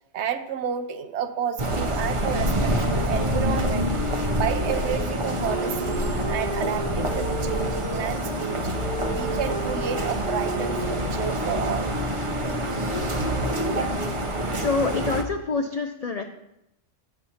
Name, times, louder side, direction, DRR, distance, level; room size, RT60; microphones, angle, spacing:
voice 1, 0.1-3.9 4.3-8.6 9.1-12.0 13.7-13.9, right 8 dB, 70° right, 10 dB, 0.8 m, -31 dB
sound 1, 1.6-15.2, equal, 35° right, 0.6 m, -27 dB
sound 2, 2.4-8.0 8.7-14.3, equal, 30° left, 0.9 m, -35 dB
voice 2, 14.6-16.2, left 4 dB, 85° left, 6 dB, 0.3 m, -27 dB
9.1 x 8.0 x 2.8 m, 0.85 s
omnidirectional pair, 1.3 m